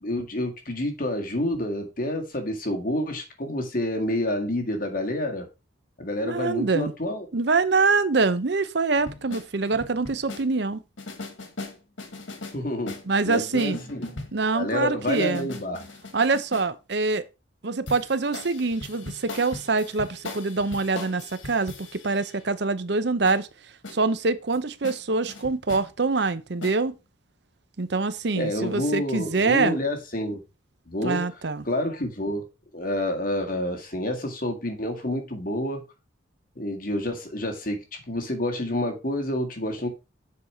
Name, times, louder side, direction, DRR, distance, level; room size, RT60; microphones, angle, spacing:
voice 1, 0.0-5.5 6.0-7.3 12.5-12.9 13.2-14.1 14.5-15.8 28.3-30.4 30.9-31.2 31.7-32.5 32.7-35.8 36.6-39.9, left 1 dB, 45° left, 1.9 m, -28 dB
voice 2, 6.2-6.9 7.3-10.8 13.1-13.8 14.3-15.5 16.1-17.3 17.6-23.5 23.9-26.9 27.8-29.8 31.0-31.6, right 3 dB, 60° right, 0.7 m, -25 dB
sound 1, 8.9-10.5 11.0-12.6 12.9-14.5 15.1-16.7 17.9-22.4 23.2-23.4 23.8-24.0 24.5-24.6 24.8-25.0 25.3-25.9 26.6-26.8, left 3 dB, 75° left, 1.6 m, -39 dB
7.1 x 4.7 x 5.6 m
head